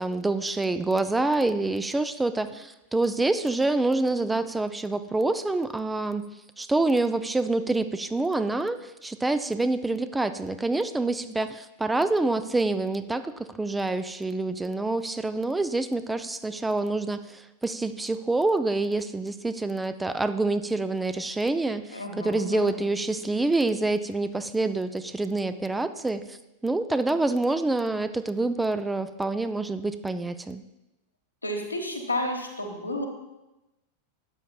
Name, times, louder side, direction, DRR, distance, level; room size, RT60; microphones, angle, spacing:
voice 1, 0.0-6.3 6.6-26.4 26.6-30.6, right 2 dB, 10° right, 11 dB, 0.4 m, -27 dB
voice 2, 21.9-22.9 31.4-33.0, left 1 dB, 85° left, 2 dB, 1.2 m, -32 dB
12.0 x 8.4 x 2.3 m, 0.98 s
figure-of-eight pair, 90°, 0 cm